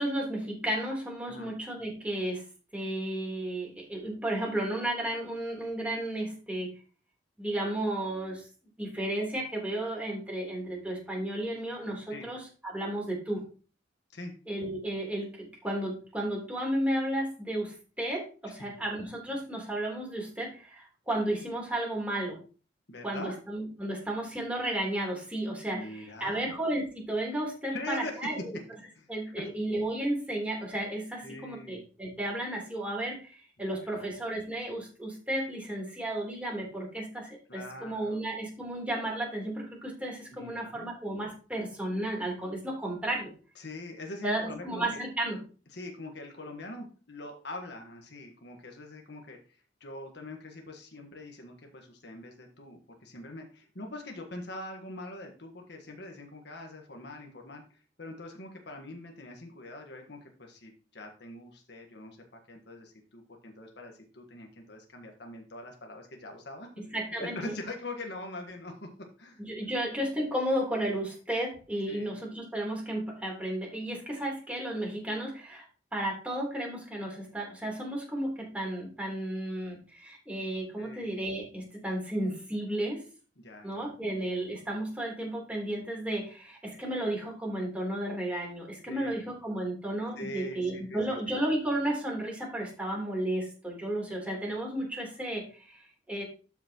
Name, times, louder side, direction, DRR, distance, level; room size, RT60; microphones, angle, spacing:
voice 1, 0.0-2.4 2.7-6.7 7.4-8.5 8.8-13.4 14.5-22.4 23.0-28.6 29.1-43.3 44.2-45.4 66.9-67.5 69.4-75.6 75.9-83.0 83.6-96.2, right 1 dB, 10° right, -2 dB, 3.6 m, -33 dB
voice 2, 22.9-23.4 25.7-26.5 27.7-28.3 28.9-29.1 31.2-31.9 33.6-34.1 37.5-38.2 40.3-40.9 43.5-45.0 45.7-49.4 49.8-66.7 67.2-68.9 69.2-69.4 71.9-72.1 80.8-81.1 83.4-84.1 88.9-89.3 90.2-91.3, left 2 dB, 65° left, 2 dB, 1.5 m, -43 dB
12.0 x 5.9 x 3.0 m, 0.37 s
head